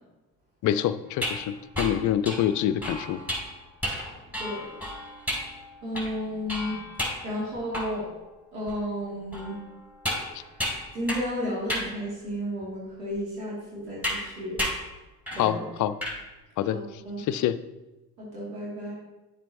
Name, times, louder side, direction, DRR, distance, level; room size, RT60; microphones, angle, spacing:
voice 1, 0.6-3.2 15.4-16.0 16.6-16.8 17.2-17.6, left 11 dB, 40° left, 14 dB, 0.5 m, -26 dB
stan banging keginea, 1.1-8.2 8.7-8.8 9.3-11.4 11.7-11.9 12.6-12.7 14.0-14.3 14.6-14.9 15.3-15.5 15.8-16.2, equal, 5° right, 3.1 m, -33 dB
voice 2, 4.0-4.7 5.8-6.8 7.2-8.0 8.5-9.6 10.9-14.6 15.3-15.6 16.7-17.2 18.2-18.9, equal, 75° right, -6 dB, 2.4 m, -33 dB
10.0 x 7.4 x 2.7 m, 1.1 s
figure-of-eight pair, 50°, 49 cm